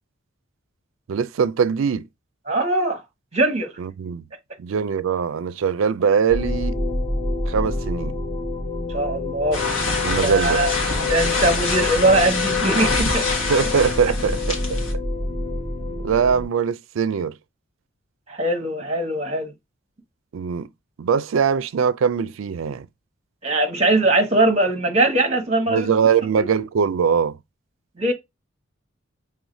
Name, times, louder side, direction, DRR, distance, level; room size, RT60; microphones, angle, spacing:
voice 1, 1.1-2.1 3.8-4.2 4.6-6.8 7.5-8.2 10.0-10.6 13.3-14.8 16.0-17.4 20.3-20.7 21.0-22.9 25.7-27.4, right 6 dB, 75° right, 0.4 m, -22 dB
voice 2, 2.5-3.0 3.3-3.7 8.9-9.6 10.2-10.7 11.1-13.3 18.3-19.5 23.4-25.9 26.3-26.5 28.0-28.1, right 2 dB, 35° right, 1.0 m, -21 dB
sound 1, 6.3-16.4, left 3 dB, 35° left, 1.8 m, -27 dB
sound 2, 9.5-14.9, left 3 dB, 85° left, 1.4 m, -25 dB
4.8 x 3.3 x 2.6 m
head